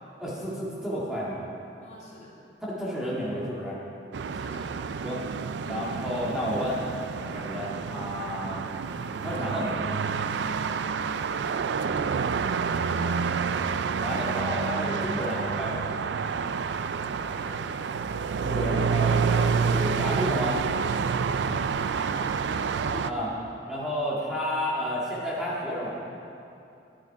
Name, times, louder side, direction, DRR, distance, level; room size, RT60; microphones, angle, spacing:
voice 1, 0.2-1.4 2.6-3.8 5.0-5.2 5.7-6.8 7.2-8.6 9.2-9.9 14.0-16.0 18.4-20.6 23.0-23.3 23.7-26.0, equal, 5° right, -7 dB, 1.9 m, -31 dB
voice 2, 1.8-2.4 4.3-4.7 12.9-13.4 17.1-17.7 22.0-23.3, equal, 40° left, -5 dB, 2.4 m, -45 dB
sound 1, 4.1-23.1, right 6 dB, 70° right, 0.4 m, -28 dB
11.5 x 10.0 x 4.7 m, 2.7 s
head